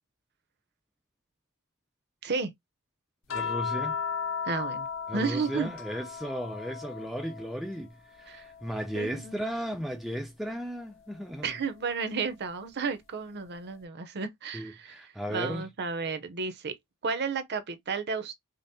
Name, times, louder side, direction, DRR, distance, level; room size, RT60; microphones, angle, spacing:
sound 1, 3.3-7.8 8.1-9.8 11.3-11.5, left 6 dB, 60° left, 0.7 m, -36 dB
voice 1, 3.3-4.0 5.1-11.5 14.5-15.6, equal, ahead, 0.3 m, -35 dB
voice 2, 4.5-4.9 5.1-5.7 8.3-8.4 8.9-9.3 11.4-16.7 17.0-18.3, right 5 dB, 50° right, 0.6 m, -32 dB
5.1 x 2.0 x 2.7 m
head